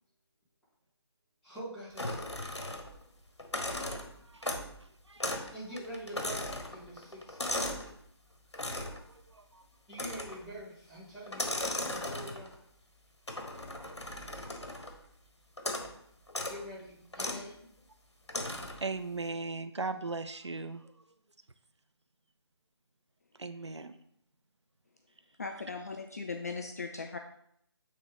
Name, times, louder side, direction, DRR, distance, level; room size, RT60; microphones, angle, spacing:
voice 1, 1.4-2.5 5.5-7.4 9.9-12.6 16.5-17.7, right 1 dB, 5° left, -12 dB, 2.2 m, -45 dB
sound 1, 2.0-3.0 3.4-4.8 5.2-5.5 5.8-7.9 8.5-9.0 9.9-10.5 11.3-12.6 13.3-15.0 15.6-15.9 16.3-16.6 17.1-17.4 18.3-18.9, left 1 dB, 85° left, 1.3 m, -37 dB
voice 2, 18.8-20.8 23.4-23.9, right 3 dB, 85° right, 10 dB, 0.5 m, -37 dB
voice 3, 25.4-27.2, left 4 dB, 35° left, 4 dB, 0.4 m, -38 dB
8.6 x 3.6 x 3.6 m, 0.71 s
figure-of-eight pair, 155°, 14 cm